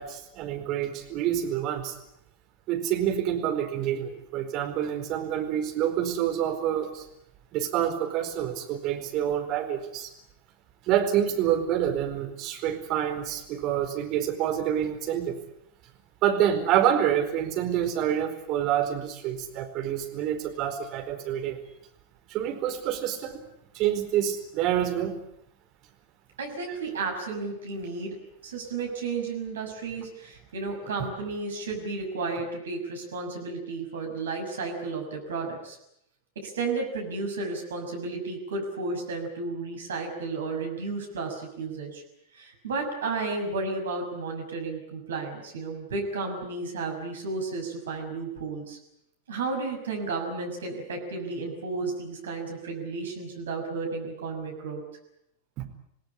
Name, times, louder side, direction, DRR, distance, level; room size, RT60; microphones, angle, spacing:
voice 1, 0.0-2.0 2.7-7.1 7.5-10.1 10.9-15.4 16.2-21.6 22.3-23.4 23.7-25.2 55.6-55.7, right 10 dB, 40° right, 5 dB, 4.5 m, -27 dB
voice 2, 26.4-28.2 28.4-35.8 36.3-42.0 42.3-48.8 49.3-54.8, right 3 dB, 65° right, 2 dB, 6.4 m, -33 dB
27.5 x 18.0 x 9.9 m, 0.79 s
figure-of-eight pair, 90°, 0 cm